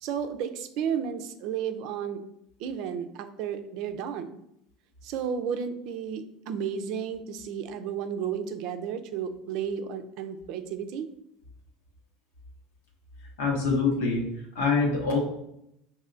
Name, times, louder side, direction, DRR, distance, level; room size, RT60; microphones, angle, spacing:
voice 1, 0.0-2.2 2.6-4.4 5.0-11.1, right 7 dB, 65° right, 8 dB, 0.4 m, -33 dB
voice 2, 13.4-14.3 14.5-15.2, left 4 dB, 90° left, -1 dB, 1.1 m, -24 dB
5.5 x 2.7 x 2.5 m, 0.78 s
supercardioid pair, 100°, 0 cm